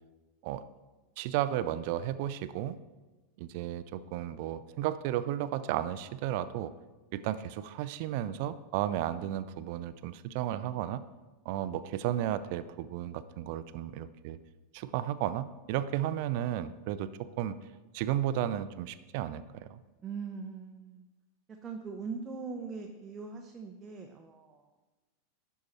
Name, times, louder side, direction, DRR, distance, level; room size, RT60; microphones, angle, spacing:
voice 1, 1.2-2.8 3.4-6.7 7.1-11.0 11.5-14.4 14.7-17.6 17.9-19.4 19.7-19.8, right 12 dB, 50° right, 14 dB, 0.4 m, -33 dB
voice 2, 20.0-21.0 21.5-24.7, right 5 dB, 25° right, 2 dB, 0.7 m, -41 dB
11.0 x 4.7 x 4.2 m, 1.2 s
figure-of-eight pair, 90°, 0 cm